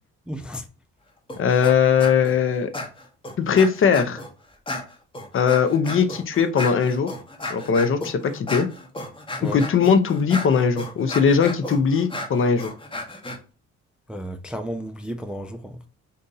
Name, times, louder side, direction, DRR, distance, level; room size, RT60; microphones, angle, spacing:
voice 1, 0.3-0.6 9.4-9.7 14.1-15.9, equal, 5° right, 0.3 m, -33 dB
sound 1, 1.3-1.7 2.0-2.3 2.7-4.3 4.7-13.4, left 2 dB, 15° left, 0.8 m, -33 dB
voice 2, 1.4-2.7 3.4-4.2 5.3-7.1 7.5-8.7 9.4-12.7, left 6 dB, 45° left, 0.5 m, -20 dB
2.7 x 2.6 x 3.8 m
cardioid pair, 90°, 30 cm